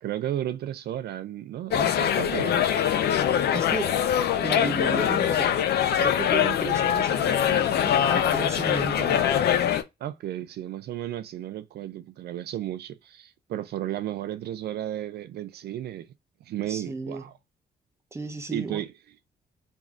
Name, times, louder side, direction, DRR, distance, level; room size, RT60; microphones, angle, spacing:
voice 1, 0.0-2.7 10.0-16.1 16.5-17.3 18.5-18.9, right 12 dB, 75° right, 0.4 m, -33 dB
sound 1, 1.7-9.8, left 9 dB, 75° left, 0.5 m, -23 dB
voice 2, 3.5-3.9 4.4-5.6 6.0-9.3 16.7-17.2 18.1-18.8, right 3 dB, 15° right, 0.8 m, -34 dB
3.1 x 2.7 x 3.5 m
cardioid pair, 110°, 17 cm